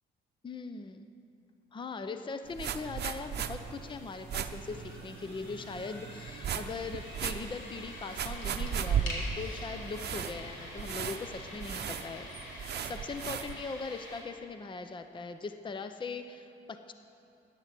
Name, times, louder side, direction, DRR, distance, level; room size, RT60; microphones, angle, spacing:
voice 1, 0.4-1.0 1.7-12.3 12.5-16.9, left 4 dB, 25° left, 9 dB, 0.6 m, -40 dB
sound 1, 2.5-13.5, right 8 dB, 55° right, 0.8 m, -37 dB
sound 2, 3.5-14.2, left 1 dB, 90° left, 2.8 m, -46 dB
14.5 x 9.9 x 6.0 m, 2.7 s
cardioid pair, 90°, 20 cm